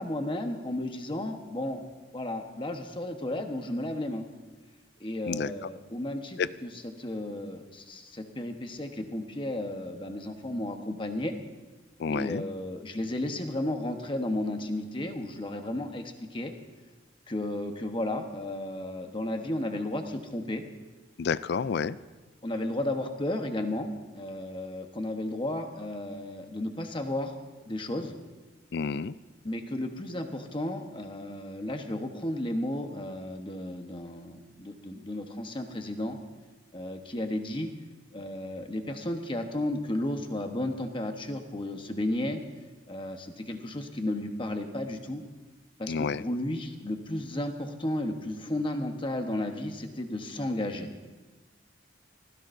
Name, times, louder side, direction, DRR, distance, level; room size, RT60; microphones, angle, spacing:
voice 1, 0.0-1.8 2.1-4.2 5.0-11.3 12.1-16.5 17.3-20.6 22.4-27.3 27.7-28.2 29.4-36.2 36.7-37.7 38.1-42.4 42.9-45.2 45.8-50.9, left 1 dB, 25° left, 5 dB, 1.1 m, -33 dB
voice 2, 5.3-5.7 6.4-6.5 12.0-12.4 21.2-22.0 28.7-29.1 45.9-46.2, left 5 dB, 60° left, 16 dB, 0.4 m, -30 dB
24.0 x 16.0 x 2.7 m, 1.3 s
head